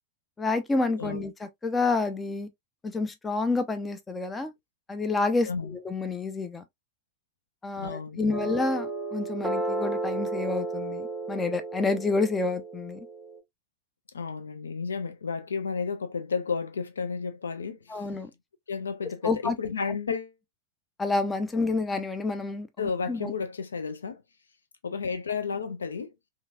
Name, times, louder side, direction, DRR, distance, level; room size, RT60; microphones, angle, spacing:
voice 1, 0.4-2.5 2.8-4.5 4.9-6.6 7.6-13.1 17.9-18.3 19.2-19.6 21.0-22.7 23.1-23.3, left 3 dB, 15° left, 0.5 m, -29 dB
voice 2, 5.4-5.8 7.8-8.5 14.1-18.0 18.7-20.3 22.8-24.2 24.8-26.1, left 5 dB, 70° left, 0.4 m, -32 dB
sound 1, 8.3-13.4, right 2 dB, 5° right, 1.0 m, -33 dB
2.9 x 2.5 x 2.3 m
figure-of-eight pair, 90°, 0 cm